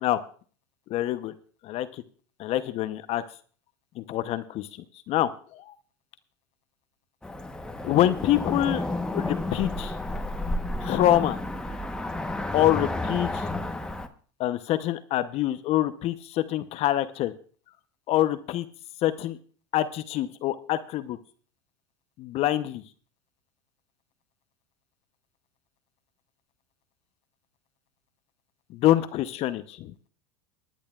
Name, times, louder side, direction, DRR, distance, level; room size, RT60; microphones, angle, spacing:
voice 1, 0.9-1.3 1.6-2.0 2.4-3.2 4.0-4.7 5.1-5.7 7.8-8.9 9.1-10.0 10.8-11.4 12.5-13.6 14.4-17.3 18.1-18.7 19.0-19.4 19.7-21.2 22.2-22.8 28.7-29.9, left 13 dB, 50° left, 12 dB, 0.8 m, -25 dB
Cricket / Motor vehicle (road), 7.2-14.1, left 2 dB, 5° left, 1.0 m, -31 dB
24.5 x 10.5 x 2.4 m, 0.42 s
hypercardioid pair, 100°, 13 cm